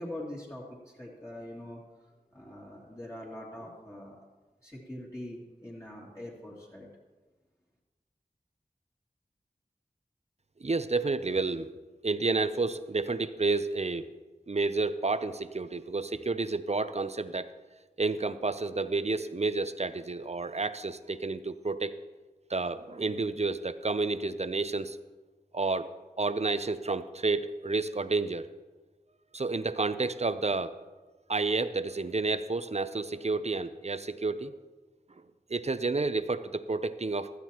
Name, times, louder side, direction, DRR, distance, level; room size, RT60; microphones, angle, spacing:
voice 1, 0.0-1.8 2.3-4.2 4.6-6.9, left 1 dB, 20° left, -5 dB, 2.5 m, -43 dB
voice 2, 10.6-11.7 12.0-14.1 14.5-17.5 18.0-21.9 22.5-25.0 25.5-25.9 26.2-28.5 29.3-30.7 31.3-34.5 35.5-37.3, right 3 dB, 45° right, 13 dB, 0.5 m, -30 dB
15.5 x 13.0 x 3.0 m, 1.3 s
wide cardioid pair, 60°, 16 cm